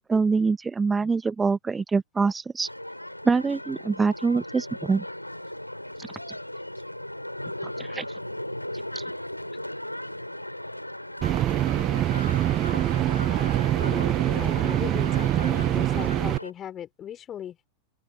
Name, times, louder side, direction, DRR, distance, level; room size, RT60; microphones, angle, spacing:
voice 1, 0.0-2.7 3.2-5.0 7.8-8.0 8.9-9.0, right 4 dB, 15° right, 1.5 m, -24 dB
sound 1, 2.6-16.5, left 1 dB, 90° left, 4.9 m, -37 dB
sound 2, 11.2-16.4, right 13 dB, 30° right, 0.9 m, -24 dB
voice 2, 13.8-17.6, left 10 dB, 25° left, 5.8 m, -38 dB
open air
figure-of-eight pair, 90°, 0 cm